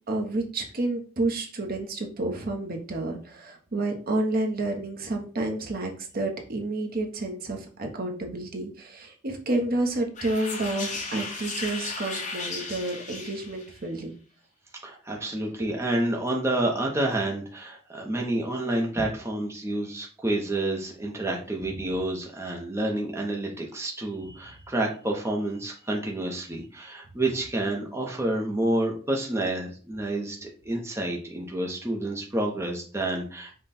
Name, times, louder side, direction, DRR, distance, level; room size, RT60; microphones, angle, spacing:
voice 1, 0.1-14.1, right 2 dB, 45° right, 2 dB, 0.8 m, -30 dB
sound 1, 10.2-13.8, left 3 dB, 35° left, 1.2 m, -35 dB
voice 2, 14.8-33.6, right 1 dB, 15° right, -1 dB, 0.7 m, -29 dB
5.4 x 2.3 x 4.1 m, 0.39 s
head